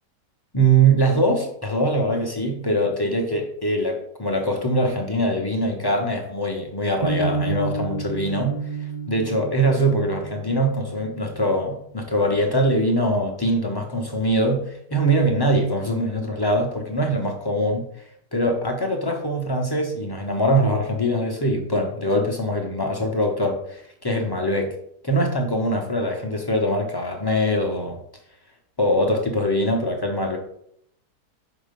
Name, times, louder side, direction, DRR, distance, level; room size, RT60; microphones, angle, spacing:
voice 1, 0.5-8.6 9.1-17.9 18.3-24.7 25.0-28.0 28.8-30.4, right 1 dB, 40° left, 1 dB, 0.3 m, -22 dB
sound 1, 7.0-13.1, right 4 dB, 50° right, 0.5 m, -31 dB
5.6 x 3.9 x 5.2 m, 0.69 s
omnidirectional pair, 1.8 m